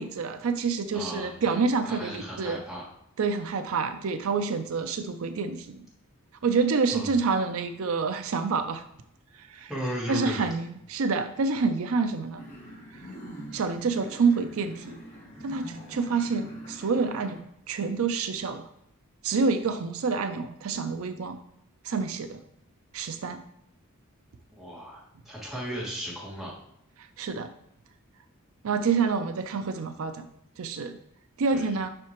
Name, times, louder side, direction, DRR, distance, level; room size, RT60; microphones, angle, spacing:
voice 1, 0.0-2.6 3.2-5.9 6.4-8.8 9.3-9.7 10.1-12.4 12.9-13.1 13.5-15.0 15.4-17.4 17.7-18.7 19.2-21.4 21.8-22.4 22.9-23.4 27.0-27.5 28.6-30.3 30.6-31.0 31.4-31.9, right 4 dB, 70° right, 9 dB, 0.5 m, -28 dB
voice 2, 0.9-2.8 6.9-7.1 9.7-10.5 24.5-26.5 31.5-31.7, equal, ahead, -7 dB, 2.2 m, -36 dB
sound 1, 12.4-17.4, right 1 dB, 35° left, 2.1 m, -44 dB
7.6 x 5.7 x 3.0 m, 0.77 s
head